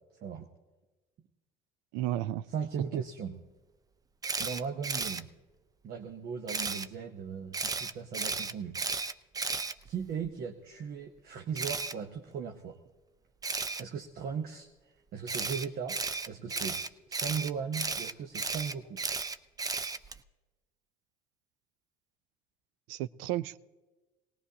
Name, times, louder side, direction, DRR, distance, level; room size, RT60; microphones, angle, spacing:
voice 1, 1.9-2.4 2.9-3.0 22.9-23.6, right 14 dB, 80° right, 18 dB, 0.4 m, -33 dB
voice 2, 2.5-3.4 4.4-5.3 5.8-8.7 9.8-12.8 13.8-14.7 15.1-16.0 16.2-16.8 17.1-19.0, right 6 dB, 55° right, 5 dB, 0.9 m, -37 dB
Camera, 4.2-5.2 6.5-6.9 7.5-10.3 11.6-11.9 13.4-13.8 15.3-20.2, right 4 dB, 20° right, 0.5 m, -34 dB
20.0 x 18.5 x 2.8 m, 1.2 s
supercardioid pair, 90°, 19 cm